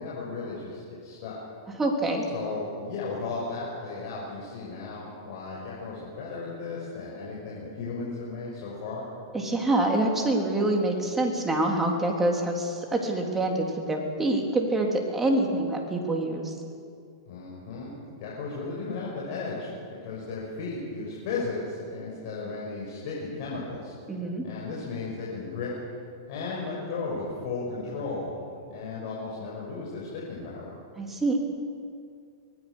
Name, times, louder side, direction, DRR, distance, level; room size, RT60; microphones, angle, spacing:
voice 1, 0.0-1.4 2.3-9.0 17.3-19.7 20.0-23.9 24.4-25.7 26.3-28.3 28.6-30.8, left 4 dB, 55° left, -4 dB, 6.3 m, -35 dB
voice 2, 1.8-2.3 9.3-16.5 24.1-24.4 31.0-31.4, right 2 dB, 10° right, 1 dB, 3.7 m, -26 dB
24.0 x 19.5 x 6.5 m, 2.4 s
hypercardioid pair, 125°, 2 cm